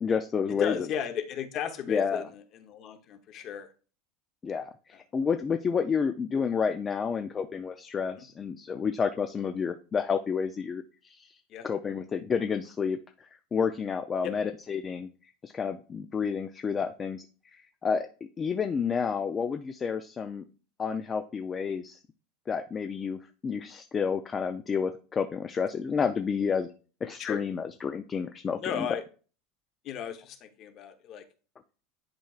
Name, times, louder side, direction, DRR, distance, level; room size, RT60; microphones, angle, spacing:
voice 1, 0.0-0.7 1.9-2.2 4.4-15.1 15.4-18.1 18.4-20.4 20.8-22.0 22.5-26.7 27.0-28.9, left 6 dB, 15° left, 7 dB, 0.3 m, -30 dB
voice 2, 0.6-3.7 8.2-8.3 11.5-11.7 14.2-14.3 27.2-27.4 28.6-29.0 29.8-31.2, left 8 dB, 35° left, 8 dB, 0.8 m, -35 dB
10.0 x 4.6 x 2.3 m, 0.37 s
supercardioid pair, 170°, 0 cm